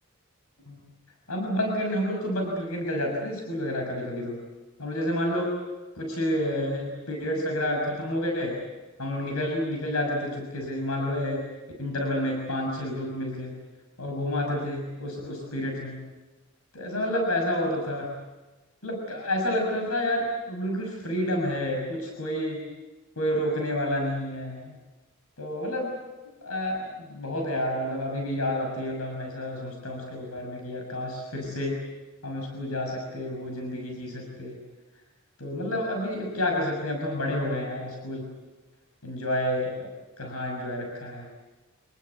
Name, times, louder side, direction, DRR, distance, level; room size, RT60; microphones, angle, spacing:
voice 1, 1.3-4.4 4.8-5.6 5.9-8.6 9.0-11.5 11.8-13.5 14.0-16.0 16.7-18.2 18.8-22.6 23.2-24.7 25.4-25.9 26.4-31.8 32.2-34.6 35.4-38.3 39.0-39.9 40.2-41.3, left 1 dB, 80° left, 1 dB, 6.3 m, -29 dB
28.0 x 20.0 x 8.3 m, 1.2 s
head